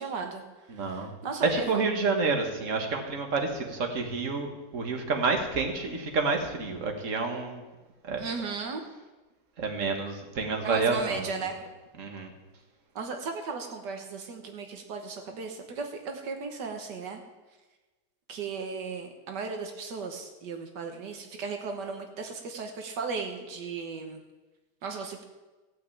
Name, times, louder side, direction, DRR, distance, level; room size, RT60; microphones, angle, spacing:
voice 1, 0.0-1.8 8.2-8.8 10.6-11.7 12.9-17.2 18.3-24.2 24.8-25.2, right 4 dB, 80° right, 4 dB, 1.8 m, -36 dB
voice 2, 0.7-1.1 1.5-7.6 8.0-8.2 9.6-11.3 12.0-12.3, right 4 dB, 50° right, 3 dB, 1.9 m, -29 dB
15.5 x 6.0 x 8.5 m, 1.2 s
omnidirectional pair, 1.8 m